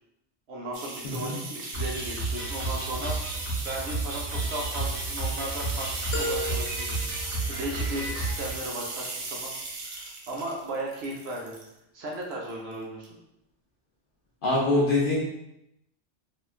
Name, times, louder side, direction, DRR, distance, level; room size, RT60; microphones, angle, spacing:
voice 1, 0.5-3.2 3.6-9.5 9.8-11.5 11.9-13.1, right 1 dB, 65° right, -2 dB, 0.8 m, -36 dB
sound 1, 0.7-11.7 12.1-12.7 13.0-13.1, right 3 dB, 90° right, 1.0 m, -37 dB
voice 2, 1.0-1.4 14.4-15.2, left 2 dB, 55° left, -5 dB, 0.7 m, -24 dB
sound 2, 1.7-8.6, right 2 dB, 10° left, 0.8 m, -32 dB
sound 3, 6.1-8.2, left 1 dB, 90° left, 1.0 m, -35 dB
3.0 x 2.2 x 2.4 m, 0.82 s
omnidirectional pair, 1.3 m